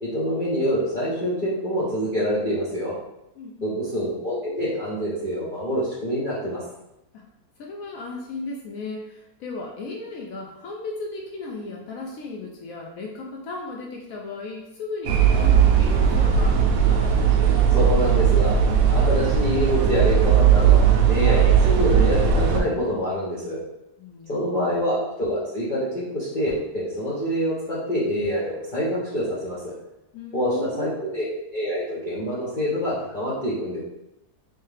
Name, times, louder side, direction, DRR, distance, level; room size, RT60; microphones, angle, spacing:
voice 1, 0.0-2.9 3.6-6.6 17.7-18.6 18.9-23.6 24.3-29.7 30.3-33.8, equal, 40° left, -9 dB, 0.9 m, -26 dB
voice 2, 3.3-3.8 7.1-7.2 7.6-16.6 24.0-24.4 24.7-24.8 30.1-31.1, left 3 dB, 65° left, -1 dB, 1.0 m, -35 dB
sound 1, 15.0-22.6, right 7 dB, 70° right, 0.9 m, -18 dB
3.5 x 3.2 x 3.3 m, 0.88 s
omnidirectional pair, 1.7 m